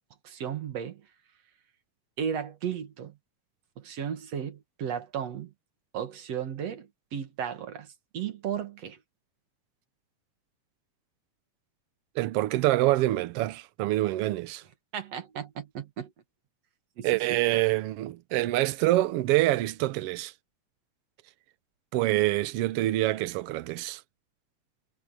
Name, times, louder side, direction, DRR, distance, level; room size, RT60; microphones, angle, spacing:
voice 1, 0.2-1.0 2.2-3.2 3.8-5.5 5.9-9.0 14.9-16.1 17.0-17.6, right 8 dB, 60° right, 2.6 m, -35 dB
voice 2, 12.2-14.6 17.0-20.3 21.9-24.0, right 16 dB, 75° right, 1.4 m, -26 dB
omnidirectional pair, 3.5 m